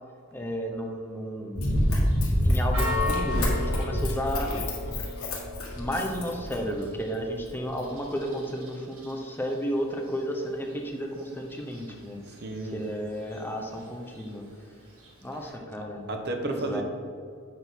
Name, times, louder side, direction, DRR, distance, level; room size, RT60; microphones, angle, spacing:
voice 1, 0.3-1.6 2.4-4.5 5.8-12.4 12.7-14.4 15.2-16.1 16.4-16.8, equal, 10° left, 1 dB, 0.7 m, -33 dB
Run, 1.6-6.8 7.4-7.5, equal, 70° left, 1.7 m, -27 dB
Church bell, 1.7-15.5, left 3 dB, 65° right, 1.7 m, -40 dB
voice 2, 12.3-12.8 15.8-16.8, right 2 dB, 50° right, 4 dB, 0.8 m, -33 dB
8.2 x 3.7 x 5.8 m, 2.3 s
head